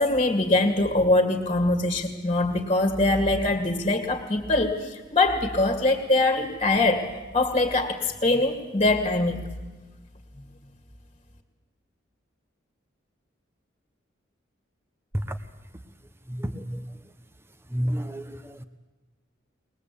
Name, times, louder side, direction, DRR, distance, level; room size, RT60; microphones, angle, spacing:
voice 1, 0.0-7.1 7.3-9.4, left 2 dB, 30° left, 5 dB, 2.3 m, -23 dB
voice 2, 16.3-16.8 17.7-18.6, equal, 10° right, 10 dB, 1.1 m, -31 dB
21.5 x 20.0 x 8.5 m, 1.2 s
head